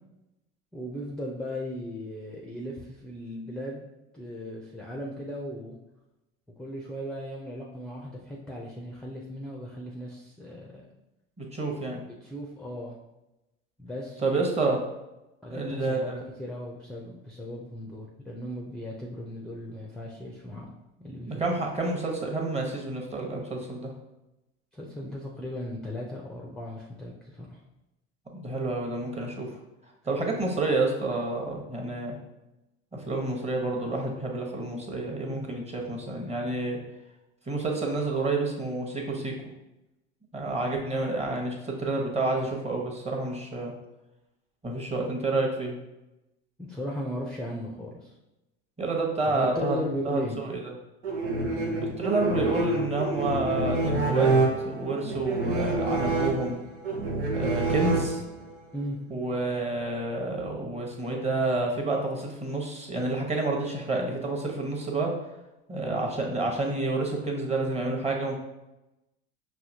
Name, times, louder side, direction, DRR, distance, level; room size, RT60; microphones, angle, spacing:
voice 1, 0.7-3.9 4.1-5.8 6.6-10.8 12.0-13.0 13.8-14.5 15.4-20.7 21.0-21.4 24.7-27.6 46.6-48.1 49.2-50.4 58.7-59.0, equal, ahead, -2 dB, 0.6 m, -37 dB
voice 2, 11.4-12.0 14.2-14.8 15.5-16.1 21.3-23.9 28.3-29.5 30.0-32.2 32.9-36.8 37.5-39.3 40.3-43.7 44.6-45.8 48.8-49.8 50.1-50.6 51.8-54.3 54.6-56.6 57.3-58.2 59.1-65.1 65.7-68.3, right 2 dB, 15° right, 0 dB, 1.0 m, -29 dB
sound 1, 51.0-58.5, right 2 dB, 90° right, 1.0 m, -27 dB
5.5 x 2.8 x 2.7 m, 0.96 s
hypercardioid pair, 85°, 36 cm